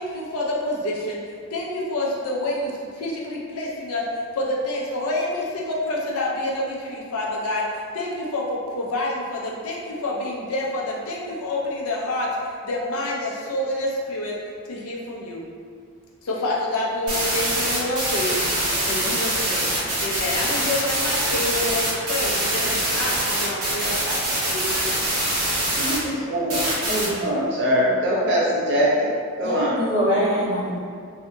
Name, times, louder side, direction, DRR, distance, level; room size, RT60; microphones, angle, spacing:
voice 1, 0.0-14.3 14.6-15.4 16.2-19.7 20.0-25.0, left 1 dB, 80° left, 0.5 m, -28 dB
sound 1, 17.1-26.0 26.5-27.1, right 1 dB, 85° right, 0.9 m, -24 dB
voice 2, 25.8-26.6 27.2-29.1 29.4-29.8, equal, 50° right, 0.6 m, -22 dB
voice 3, 26.6-27.2 29.4-30.8, equal, 50° left, 0.8 m, -24 dB
2.7 x 2.7 x 2.2 m
head